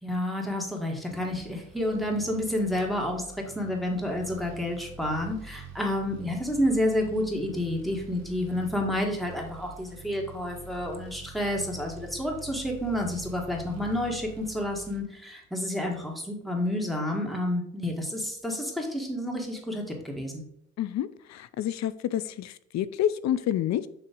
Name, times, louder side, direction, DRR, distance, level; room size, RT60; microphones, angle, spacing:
voice 1, 0.0-3.2 3.5-20.4, left 1 dB, ahead, 0 dB, 1.6 m, -30 dB
sound 1, 1.2-15.0, right 5 dB, 60° right, 1.5 m, -46 dB
voice 2, 20.8-23.9, left 11 dB, 65° left, 15 dB, 0.5 m, -29 dB
7.0 x 2.9 x 5.2 m, 0.71 s
cardioid pair, 90°, 30 cm